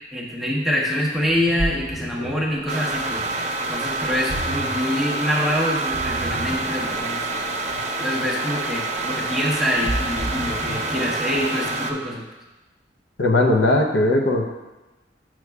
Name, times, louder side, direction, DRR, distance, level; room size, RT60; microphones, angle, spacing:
voice 1, 0.1-3.2 3.6-7.6 8.0-12.2, equal, ahead, -4 dB, 1.0 m, -25 dB
Ocean, 1.3-11.9, right 1 dB, 35° left, 1.4 m, -34 dB
sound 1, 2.7-11.9, right 2 dB, 40° right, 0.5 m, -27 dB
voice 2, 13.2-14.4, left 2 dB, 80° left, 2 dB, 0.7 m, -18 dB
7.8 x 6.1 x 2.3 m, 1.1 s
head